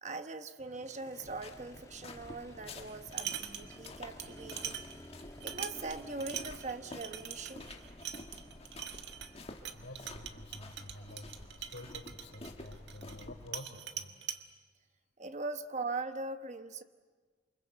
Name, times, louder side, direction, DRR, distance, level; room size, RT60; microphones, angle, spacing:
voice 1, 0.0-4.8 5.4-7.7 15.2-16.8, right 3 dB, 40° right, 9 dB, 1.1 m, -41 dB
Motorcycle, 0.6-13.6, left 1 dB, 20° left, 1.5 m, -56 dB
sound 1, 1.2-13.5, left 2 dB, 35° left, 1.8 m, -50 dB
sound 2, 2.9-3.9 4.2-13.3 13.5-14.4, right 9 dB, 65° right, 1.6 m, -43 dB
voice 2, 9.7-14.2, left 1 dB, 90° left, 4 dB, 4.1 m, -49 dB
28.0 x 25.0 x 8.1 m, 1.5 s
head